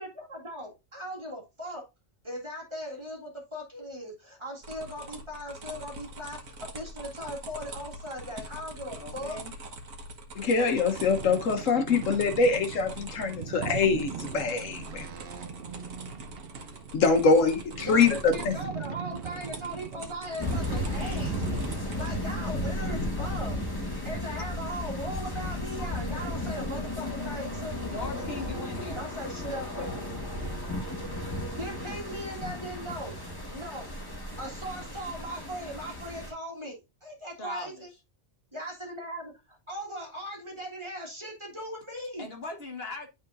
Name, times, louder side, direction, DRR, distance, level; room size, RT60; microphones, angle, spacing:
voice 1, 0.0-1.8 2.2-9.4 17.8-21.4 22.0-23.6 24.0-28.4 29.0-30.0 31.5-33.1 33.5-33.9 34.4-37.9 38.5-42.3, equal, 20° right, 1.9 m, -39 dB
sound 1, 4.6-22.2, right 1 dB, 85° right, 1.6 m, -43 dB
voice 2, 8.9-9.5 27.9-29.0 37.4-37.9 42.2-43.1, left 2 dB, 50° left, 1.4 m, -39 dB
voice 3, 10.4-15.1 16.9-18.5, left 4 dB, 75° left, 1.2 m, -24 dB
Boat Water vehicle, 10.9-21.8, right 9 dB, 60° right, 0.7 m, -40 dB
sound 2, 20.4-36.3, left 1 dB, 15° left, 1.4 m, -34 dB
11.0 x 3.8 x 2.5 m
omnidirectional pair, 1.4 m